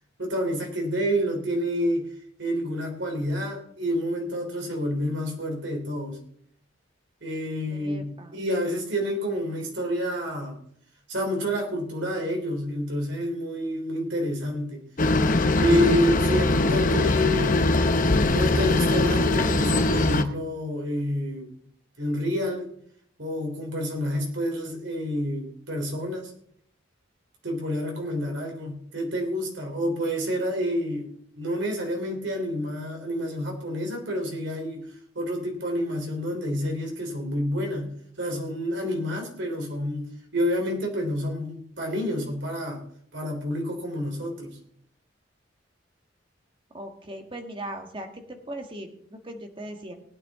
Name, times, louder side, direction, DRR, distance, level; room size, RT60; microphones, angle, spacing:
voice 1, 0.2-2.1 2.4-6.2 7.2-10.6 11.1-14.8 15.6-17.7 18.3-21.5 22.0-22.7 23.2-26.3 27.4-31.1 31.4-34.9 35.2-37.9 38.2-40.1 40.3-42.8 43.1-44.6, equal, 65° right, 1 dB, 3.6 m, -28 dB
voice 2, 7.7-8.4 46.7-49.9, right 1 dB, 25° right, 4 dB, 1.7 m, -39 dB
sound 1, 15.0-20.2, left 2 dB, 45° left, 0.9 m, -21 dB
19.0 x 9.6 x 3.7 m, 0.65 s
head